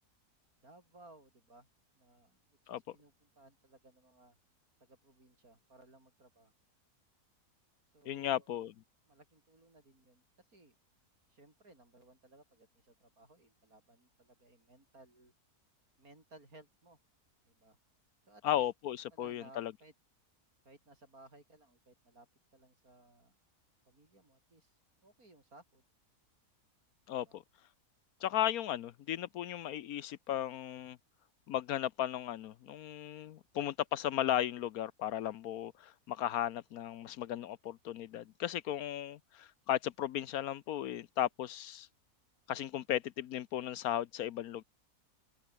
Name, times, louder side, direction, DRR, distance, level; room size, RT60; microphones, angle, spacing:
voice 1, 0.6-1.7 1.9-2.4 2.6-4.4 4.8-6.5 7.9-8.5 9.1-10.8 11.3-15.3 16.0-17.0 17.5-17.8 18.3-18.6 19.1-19.9 20.7-22.3 22.5-23.4 23.9-24.8 25.0-25.8 27.1-27.4, right 2 dB, 65° right, 7.1 m, -60 dB
voice 2, 8.1-8.7 18.4-19.7 27.1-27.4 28.2-31.0 31.5-41.9 42.5-44.6, left 11 dB, 70° left, 1.1 m, -35 dB
omnidirectional pair, 1.6 m